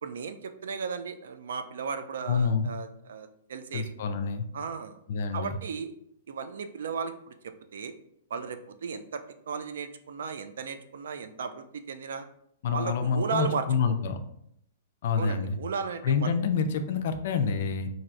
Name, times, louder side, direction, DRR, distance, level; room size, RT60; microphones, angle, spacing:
voice 1, 0.0-3.9 4.5-5.0 5.3-5.9 6.3-7.9 8.3-12.2 12.7-14.0 15.2-16.3, right 5 dB, 75° right, 9 dB, 0.3 m, -35 dB
voice 2, 2.3-2.7 3.7-4.5 5.1-5.5 12.6-14.2 15.0-15.6 16.0-17.9, left 5 dB, 60° left, 8 dB, 0.4 m, -27 dB
3.1 x 2.6 x 2.5 m, 0.72 s
hypercardioid pair, 145°, 0 cm